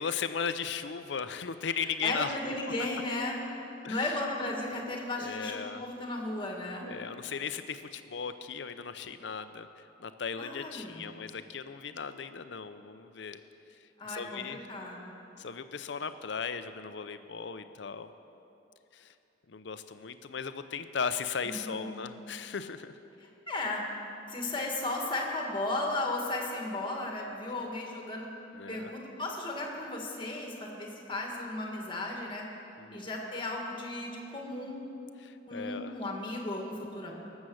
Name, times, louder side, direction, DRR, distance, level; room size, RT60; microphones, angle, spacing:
voice 1, 0.0-2.4 3.8-4.2 5.2-5.8 6.8-13.4 13.7-13.8 14.0-14.6 15.4-18.1 18.9-19.1 19.5-23.0 28.5-28.9 32.8-33.0 35.2-36.0, left 6 dB, 65° left, 11 dB, 0.6 m, -37 dB
voice 2, 1.8-3.5 3.9-6.9 10.4-11.1 14.0-15.1 21.4-21.9 23.2-23.9 24.3-28.3 28.7-32.4 32.9-34.8 35.5-37.1, left 2 dB, 25° left, 0 dB, 1.8 m, -35 dB
18.0 x 7.3 x 6.4 m, 2.9 s
head